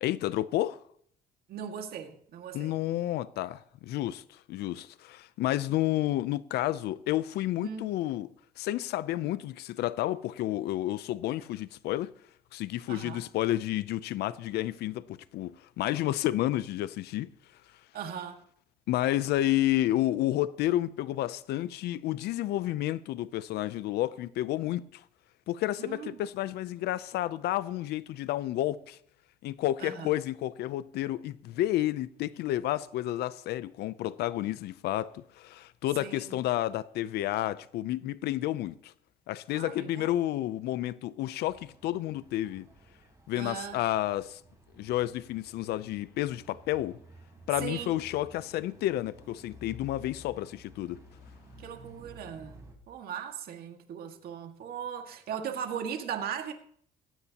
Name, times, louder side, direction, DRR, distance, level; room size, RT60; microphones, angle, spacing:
voice 1, 0.0-0.8 2.5-8.3 8.6-12.1 12.5-17.3 18.9-25.0 25.5-29.0 29.4-38.9 39.3-42.7 43.3-44.4 44.8-47.0 47.5-51.0, left 14 dB, 75° left, 0.6 m, -31 dB
voice 2, 1.5-2.7 7.6-7.9 12.9-13.2 17.9-18.4 25.8-26.2 29.8-30.1 36.0-36.3 39.5-40.1 43.3-43.8 47.6-48.0 51.6-56.5, right 8 dB, 65° right, 1.9 m, -38 dB
sound 1, 41.4-52.7, equal, 20° right, 4.3 m, -53 dB
18.0 x 15.5 x 2.9 m
cardioid pair, 110°, 17 cm